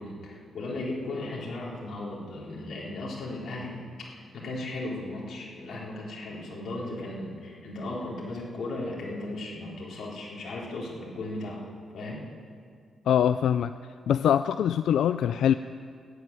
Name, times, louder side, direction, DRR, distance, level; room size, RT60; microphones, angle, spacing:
voice 1, 0.0-3.8 4.1-11.6 11.9-12.2, left 2 dB, 50° left, -4 dB, 3.7 m, -36 dB
voice 2, 13.1-13.7 14.1-15.5, left 9 dB, 75° left, 12 dB, 0.3 m, -23 dB
14.0 x 9.8 x 9.7 m, 2.1 s
wide cardioid pair, 175°, 0 cm